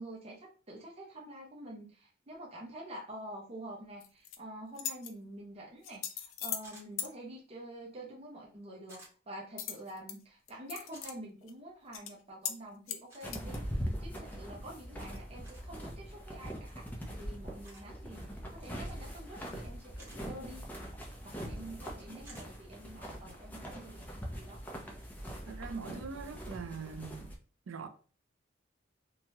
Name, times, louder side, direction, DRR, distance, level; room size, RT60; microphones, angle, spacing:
voice 1, 0.0-20.6 21.2-24.0 24.3-24.6, right 1 dB, 30° right, 0.6 m, -47 dB
sound 1, 4.0-4.4 4.7-5.1 5.8-6.7 7.0-7.1 9.6-10.2 10.5-11.1 11.5-11.6 11.9-12.1 12.4-12.6 12.9-13.6, left 9 dB, 85° left, 0.4 m, -39 dB
sound 2, 6.6-6.9 8.9-9.1 10.9-11.1 13.1-13.3 15.4-15.7 17.6-17.9 20.0-20.2 22.2-22.5, right 2 dB, 15° right, 1.2 m, -54 dB
sound 3, 13.2-27.4, equal, 10° left, 0.6 m, -42 dB
voice 2, 25.5-27.4 27.7-27.9, right 5 dB, 90° right, 0.4 m, -42 dB
3.1 x 2.3 x 2.7 m
head